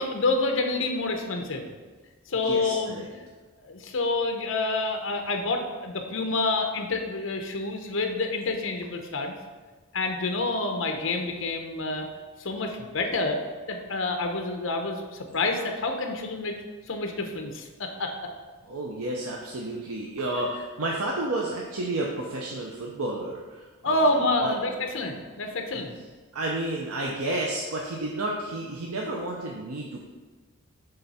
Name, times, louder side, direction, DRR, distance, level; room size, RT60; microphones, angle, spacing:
voice 1, 0.0-1.7 2.3-2.9 3.6-9.4 9.9-12.1 12.4-13.4 13.7-15.0 15.3-16.5 16.9-18.1 23.8-25.9, left 2 dB, 65° left, 4 dB, 0.7 m, -28 dB
voice 2, 2.4-3.1 18.7-24.5 25.7-25.9 26.3-30.0, right 2 dB, 90° right, -2 dB, 0.7 m, -31 dB
7.7 x 3.3 x 4.2 m, 1.3 s
head